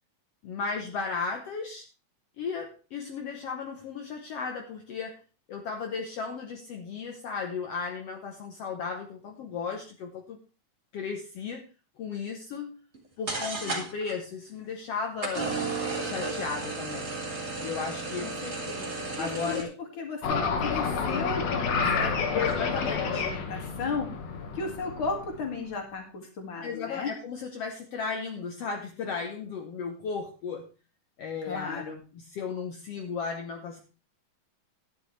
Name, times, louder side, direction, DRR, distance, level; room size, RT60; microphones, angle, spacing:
voice 1, 0.4-1.8 2.4-5.2 5.5-10.4 10.9-11.6 12.0-12.8 13.2-15.6 16.0-17.2 17.6-18.3 19.2-19.7 22.3-23.2 26.6-30.7 31.2-31.8 32.3-33.8, left 5 dB, 65° left, 3 dB, 1.8 m, -35 dB
sound 1, 12.9-13.0 13.3-14.1 15.2-19.6, right 3 dB, 25° right, 2.2 m, -33 dB
voice 2, 18.1-24.1 24.5-27.1 31.4-32.0, left 4 dB, 40° left, 2 dB, 2.7 m, -35 dB
sound 2, 20.2-25.6, left 5 dB, 85° left, 3.1 m, -29 dB
12.5 x 10.0 x 3.2 m, 0.33 s
omnidirectional pair, 3.5 m